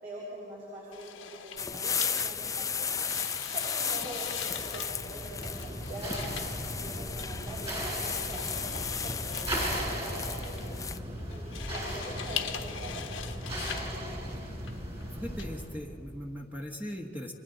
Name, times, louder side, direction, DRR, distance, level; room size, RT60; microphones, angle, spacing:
voice 1, 0.0-2.7 3.5-10.7 11.3-14.0, right 1 dB, 45° right, -7 dB, 5.9 m, -44 dB
sound 1, 0.9-15.4, left 8 dB, 70° left, 1.2 m, -42 dB
sound 2, 1.6-11.0, left 6 dB, 15° left, 0.5 m, -35 dB
sound 3, 4.3-15.8, right 1 dB, 30° right, 4.4 m, -37 dB
voice 2, 15.1-17.3, equal, 10° right, 0 dB, 1.1 m, -39 dB
30.0 x 24.0 x 3.9 m, 2.8 s
head